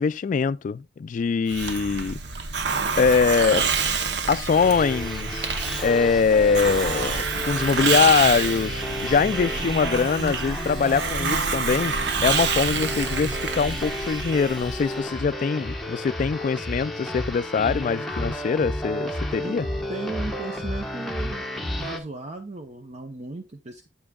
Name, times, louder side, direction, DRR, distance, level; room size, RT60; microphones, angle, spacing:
voice 1, 0.0-2.2 3.0-3.7 4.3-5.5 5.8-12.0 12.2-19.7, left 5 dB, 45° left, 0.3 m, -23 dB
Hiss, 1.5-15.0, right 5 dB, 70° right, 0.8 m, -27 dB
sound 1, 4.5-22.0, left 1 dB, ahead, 1.1 m, -32 dB
sound 2, 8.0-13.6, equal, 85° right, 4.0 m, -51 dB
voice 2, 19.9-21.5 21.8-23.9, right 3 dB, 40° right, 0.7 m, -36 dB
8.7 x 8.7 x 2.3 m
head